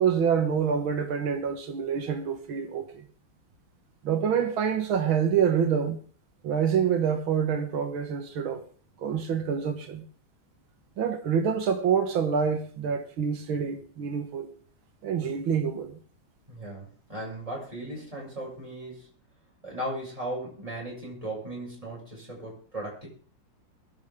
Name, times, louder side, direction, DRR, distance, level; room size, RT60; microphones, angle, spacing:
voice 1, 0.0-3.0 4.0-6.0 6.4-8.6 9.0-10.0 11.0-14.5 15.0-16.0, right 7 dB, 75° right, 2.4 m, -26 dB
voice 2, 16.5-19.1 19.6-23.1, right 1 dB, 15° right, 7.7 m, -37 dB
23.0 x 10.5 x 3.8 m
omnidirectional pair, 2.3 m